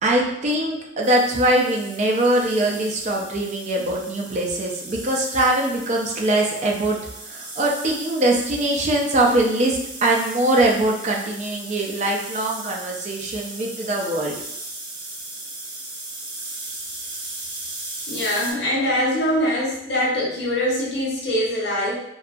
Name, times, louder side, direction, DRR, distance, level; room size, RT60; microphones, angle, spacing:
voice 1, 0.0-7.0 7.3-14.4, right 1 dB, 40° right, -1 dB, 0.4 m, -22 dB
sound 1, 1.0-18.5, right 2 dB, 75° right, 0.8 m, -37 dB
voice 2, 18.1-22.0, left 1 dB, 80° left, -5 dB, 0.9 m, -23 dB
2.7 x 2.3 x 2.5 m, 0.80 s
head